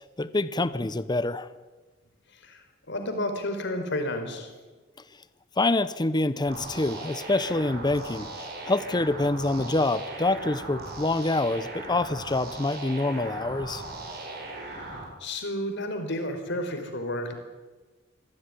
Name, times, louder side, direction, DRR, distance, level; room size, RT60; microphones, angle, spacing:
voice 1, 0.2-1.5 5.6-8.3 8.6-13.8, left 2 dB, 20° left, 14 dB, 0.8 m, -26 dB
voice 2, 2.3-4.5 14.6-17.3, left 1 dB, 65° left, 6 dB, 4.5 m, -32 dB
sound 1, 6.5-15.0, right 2 dB, 55° right, 7.0 m, -38 dB
25.0 x 16.5 x 9.8 m, 1.3 s
head